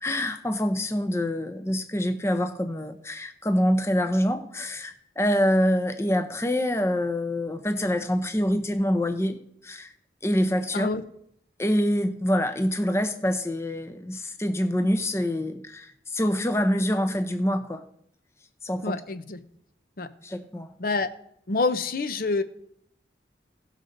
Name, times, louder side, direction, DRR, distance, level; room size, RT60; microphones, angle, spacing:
voice 1, 0.0-9.4 9.6-9.9 10.2-10.9 11.6-15.9 16.1-17.8 18.6-19.0 20.2-20.7, equal, 15° left, 8 dB, 0.7 m, -25 dB
voice 2, 18.8-19.4 20.0-20.1 20.8-21.1 21.5-22.4, left 3 dB, 50° left, 10 dB, 0.7 m, -27 dB
17.5 x 6.5 x 3.9 m, 0.73 s
head